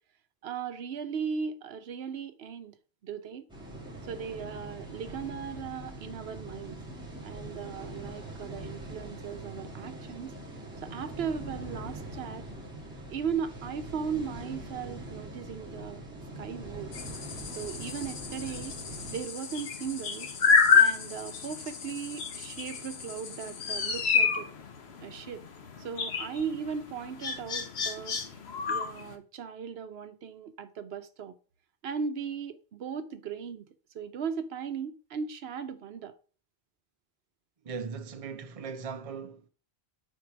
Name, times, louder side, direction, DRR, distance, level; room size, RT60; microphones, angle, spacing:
voice 1, 0.4-2.8 3.0-3.5 4.0-6.8 7.2-10.4 10.8-12.5 13.1-16.0 16.4-16.9 17.5-18.8 19.1-20.3 20.7-24.5 25.0-25.4 25.8-28.2 28.7-31.3 31.8-33.7 33.9-36.1, right 6 dB, 75° right, 0.9 m, -37 dB
sound 1, 3.5-19.2, right 1 dB, 5° right, 2.2 m, -43 dB
sound 2, 16.9-29.1, left 6 dB, 85° left, 1.1 m, -29 dB
voice 2, 37.6-39.5, right 5 dB, 40° right, 0.6 m, -39 dB
4.7 x 4.6 x 5.7 m
omnidirectional pair, 1.1 m